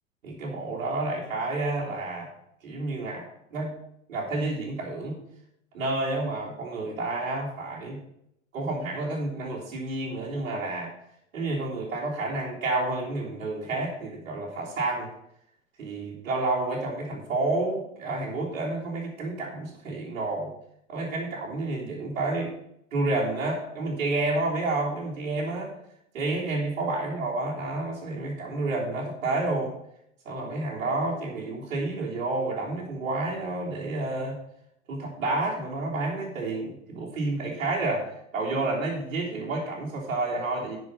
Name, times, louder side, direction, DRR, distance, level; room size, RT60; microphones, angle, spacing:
voice 1, 0.2-2.3 2.6-3.7 4.1-5.2 5.7-8.0 8.5-10.9 11.3-15.1 15.8-20.5 20.9-22.5 22.9-25.8 26.1-29.7 30.3-34.4 34.9-40.8, right 2 dB, 75° right, -4 dB, 3.6 m, -30 dB
11.0 x 6.2 x 5.7 m, 0.76 s
figure-of-eight pair, 85°, 40 cm